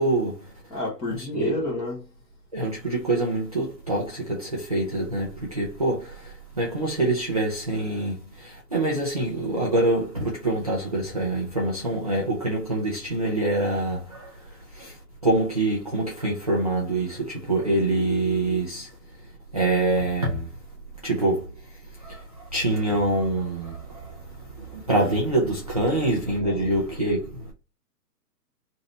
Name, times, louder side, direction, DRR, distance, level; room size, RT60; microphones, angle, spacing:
voice 1, 0.0-0.5 1.2-1.8 2.5-15.0 15.2-18.9 19.5-20.5 21.0-27.5, right 2 dB, 25° right, 0.4 m, -26 dB
voice 2, 0.7-2.0 26.4-26.8, left 2 dB, 10° left, 0.9 m, -31 dB
3.1 x 2.6 x 4.1 m
hypercardioid pair, 140°, 50 cm